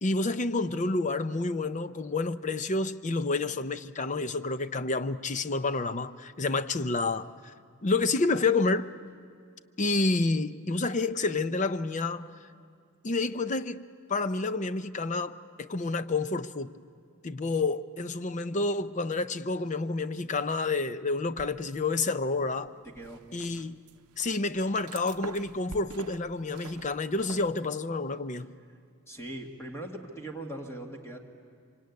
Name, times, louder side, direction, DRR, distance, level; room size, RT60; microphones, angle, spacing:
voice 1, 0.0-7.5 7.8-8.9 9.8-12.3 13.0-16.7 17.2-22.7 23.3-23.8 24.2-28.5, left 3 dB, 35° left, 0.6 m, -29 dB
sound 1, 21.4-22.1 22.4-27.5, right 5 dB, 90° right, 0.6 m, -46 dB
voice 2, 22.8-23.3 29.1-31.2, right 1 dB, 10° left, 1.8 m, -40 dB
25.5 x 24.5 x 9.5 m
head